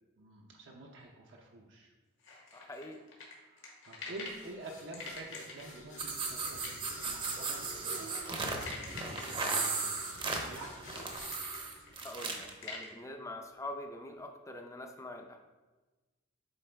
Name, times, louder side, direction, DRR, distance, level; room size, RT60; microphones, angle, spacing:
voice 1, 0.2-1.9 3.3-10.1 10.4-11.3, right 2 dB, 60° right, -1 dB, 0.6 m, -49 dB
sound 1, 2.2-4.4 4.9-12.9, left 4 dB, 65° left, 1.4 m, -46 dB
voice 2, 2.5-3.0 12.0-15.4, left 1 dB, 15° left, 5 dB, 0.5 m, -44 dB
sound 2, 4.2-12.7, left 2 dB, 80° left, 1.8 m, -52 dB
sound 3, 6.0-12.5, right 3 dB, 25° right, 0.7 m, -36 dB
8.0 x 3.8 x 3.3 m, 1.2 s
head